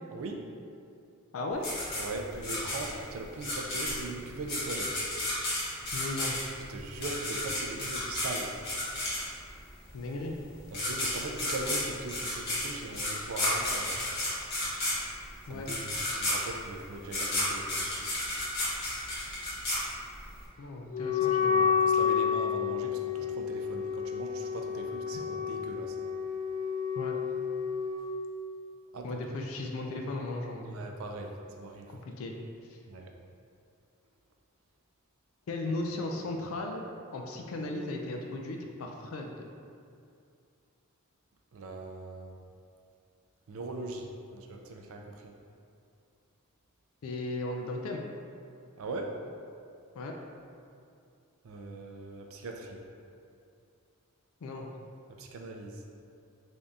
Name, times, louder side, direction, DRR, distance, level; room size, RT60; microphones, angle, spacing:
voice 1, 0.1-0.4 1.9-5.0 6.7-8.5 10.7-14.0 15.5-17.9 21.2-26.0 28.9-29.2 30.7-31.9 32.9-33.1 41.5-42.4 43.5-44.1 44.3-45.3 48.8-49.2 51.4-52.8 55.2-55.8, right 2 dB, 65° right, 2 dB, 0.4 m, -40 dB
voice 2, 1.3-1.7 5.9-6.4 9.9-10.4 15.5-15.7 20.6-21.7 27.0-27.1 29.0-30.8 31.9-32.3 32.7-32.8 35.5-36.8 37.1-39.5 47.0-48.1 49.9-50.2 54.4-54.7, left 2 dB, 65° left, 2 dB, 0.4 m, -36 dB
sound 1, 1.6-9.6 10.4-10.5 10.7-20.4, left 1 dB, 50° left, 1.2 m, -32 dB
Wind instrument woodwind instrument, 20.9-28.0, left 7 dB, 25° left, 0.9 m, -30 dB
3.4 x 2.7 x 3.5 m, 2.4 s
head